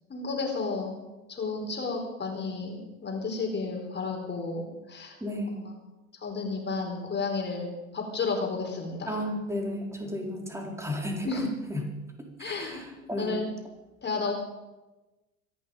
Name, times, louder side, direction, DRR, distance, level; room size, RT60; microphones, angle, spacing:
voice 1, 0.1-1.0 1.3-5.2 6.2-9.2 11.2-11.5 12.4-12.8 13.2-13.4 14.0-14.3, left 4 dB, 25° left, 2 dB, 4.7 m, -32 dB
voice 2, 5.2-5.7 9.1-11.3 11.7-11.9 12.4-13.4, left 1 dB, 5° right, 1 dB, 4.1 m, -33 dB
25.5 x 11.0 x 5.2 m, 1.1 s
hypercardioid pair, 85°, 44 cm